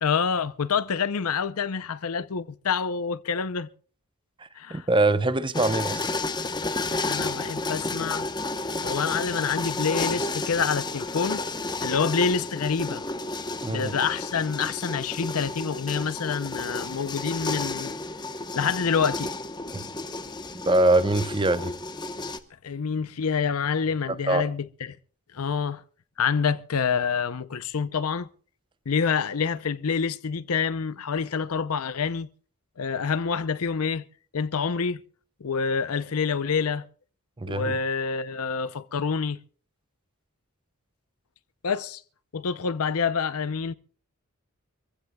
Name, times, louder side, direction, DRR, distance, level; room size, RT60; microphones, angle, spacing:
voice 1, 0.0-3.7 4.5-4.9 7.0-8.3 8.8-11.4 11.8-13.0 13.6-17.9 18.5-19.3 22.6-25.0 25.3-25.8 26.2-28.3 28.9-32.3 32.8-34.0 34.3-35.0 35.4-36.9 37.5-39.4 41.6-42.0 42.3-43.7, left 6 dB, 75° left, 0.6 m, -27 dB
voice 2, 4.7-6.0 13.6-13.9 19.7-19.8 20.5-21.7 24.1-24.5 37.4-37.8, right 2 dB, 20° right, 0.8 m, -23 dB
sound 1, 5.5-22.4, left 3 dB, 20° left, 1.0 m, -32 dB
25.0 x 15.5 x 2.3 m
head